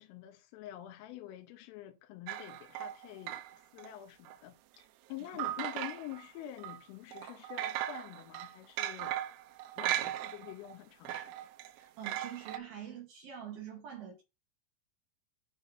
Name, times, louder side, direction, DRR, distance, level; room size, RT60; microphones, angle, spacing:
voice 1, 0.0-9.2 9.8-11.5, left 13 dB, 85° left, 3.4 m, -47 dB
sound 1, 2.3-3.9 4.3-4.4 5.4-6.3 6.6-6.8 7.1-10.7 11.1-12.6, right 13 dB, 85° right, 2.6 m, -38 dB
voice 2, 11.7-14.2, right 9 dB, 70° right, 2.3 m, -45 dB
9.3 x 3.7 x 5.5 m
omnidirectional pair, 5.9 m